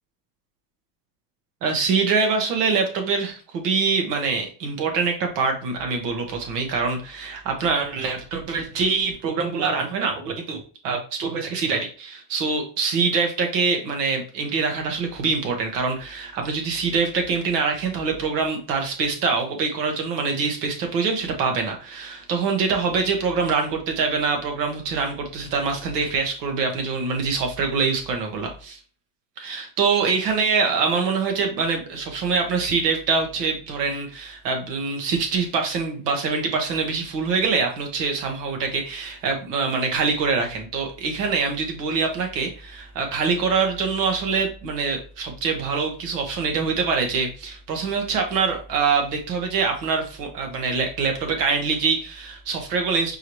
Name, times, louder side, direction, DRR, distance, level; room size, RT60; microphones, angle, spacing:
voice 1, 1.6-28.8 29.4-53.2, right 4 dB, 90° right, 3 dB, 1.4 m, -24 dB
4.6 x 3.2 x 3.1 m, 0.38 s
supercardioid pair, 90°, 46 cm